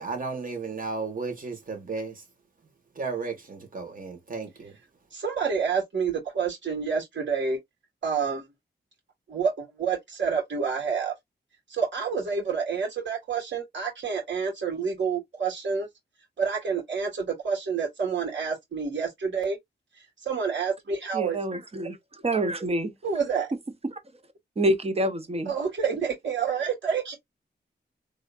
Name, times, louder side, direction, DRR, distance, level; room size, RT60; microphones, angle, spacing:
voice 1, 0.0-2.2 3.0-4.7, right 4 dB, 50° right, 2.0 m, -34 dB
voice 2, 5.1-7.6 8.0-8.5 9.3-11.1 11.7-15.9 16.4-19.6 20.2-21.4 23.0-23.5 25.5-27.2, right 6 dB, 85° right, 2.8 m, -28 dB
voice 3, 21.1-22.0 22.2-22.9 23.8-24.0 24.6-25.5, right 1 dB, 35° right, 0.9 m, -26 dB
3.6 x 3.5 x 2.6 m
wide cardioid pair, 105°, 19 cm